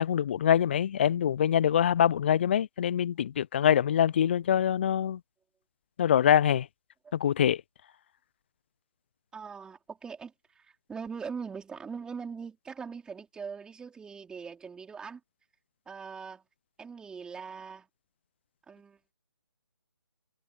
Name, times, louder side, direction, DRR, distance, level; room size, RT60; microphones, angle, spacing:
voice 1, 0.0-5.2 6.0-6.7 7.1-7.6, left 9 dB, 25° left, 0.4 m, -24 dB
voice 2, 9.3-15.2 15.9-16.4 16.8-17.9 18.7-19.0, right 6 dB, 5° right, 4.4 m, -41 dB
figure-of-eight pair, 150°, 13 cm